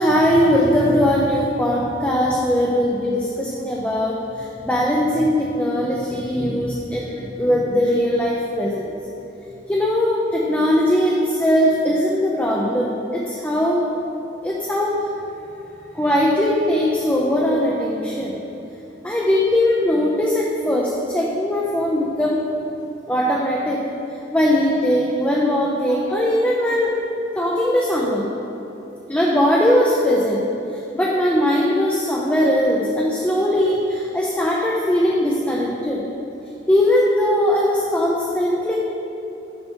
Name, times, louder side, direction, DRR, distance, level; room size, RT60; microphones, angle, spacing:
voice 1, 0.0-8.9 9.7-13.8 14.4-15.0 15.9-18.4 19.0-22.4 23.1-23.8 24.3-27.0 27.4-28.3 29.1-30.4 30.9-36.0 36.7-38.8, left 1 dB, 10° left, -3 dB, 0.4 m, -20 dB
6.4 x 5.7 x 4.4 m, 3.0 s
head